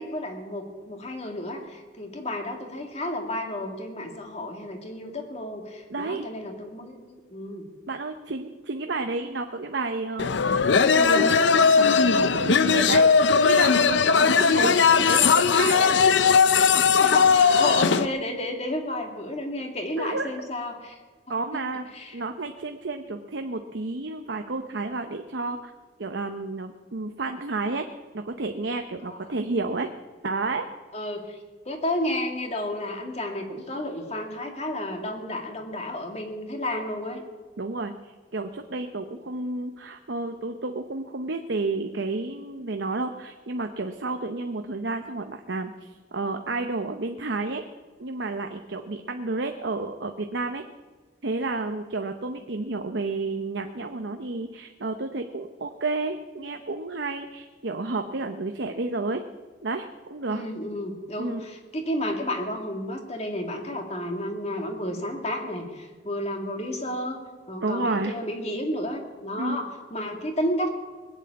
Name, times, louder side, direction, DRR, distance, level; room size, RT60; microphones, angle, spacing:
voice 1, 0.0-7.7 14.1-15.2 17.0-21.0 21.3-21.6 21.9-22.2 29.0-29.2 30.9-31.4 31.7-37.2 60.3-67.2 67.5-70.7, left 1 dB, 35° left, 3 dB, 2.3 m, -32 dB
voice 2, 5.9-6.3 7.9-13.1 13.4-15.9 20.0-20.3 21.3-21.8 22.1-25.7 26.0-27.9 28.1-29.9 30.2-30.7 37.6-47.6 48.0-50.6 51.2-59.2 59.6-60.5 61.2-61.4 67.6-68.1 69.3-69.6, right 3 dB, 75° right, 5 dB, 0.9 m, -31 dB
sound 1, 10.2-18.1, left 5 dB, 85° left, 0.6 m, -19 dB
20.0 x 8.3 x 8.5 m, 1.5 s
head